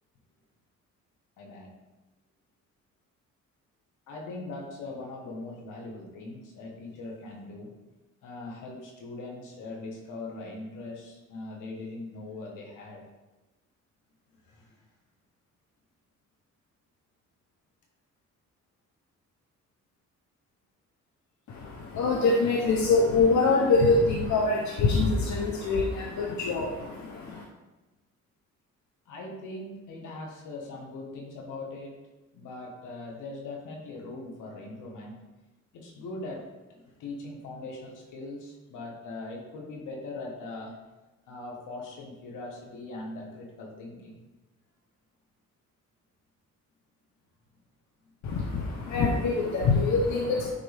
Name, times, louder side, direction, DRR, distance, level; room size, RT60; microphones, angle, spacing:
voice 1, 1.4-1.7 4.1-7.7 8.2-13.1 14.4-14.8 29.0-31.9 32.3-35.2 35.7-40.8 41.3-44.2 48.0-48.1, left 2 dB, 85° left, 0 dB, 1.6 m, -41 dB
voice 2, 21.5-27.4 48.2-50.5, left 3 dB, 70° left, -1 dB, 1.0 m, -24 dB
8.9 x 3.9 x 3.5 m, 1.1 s
cardioid pair, 90°, 30 cm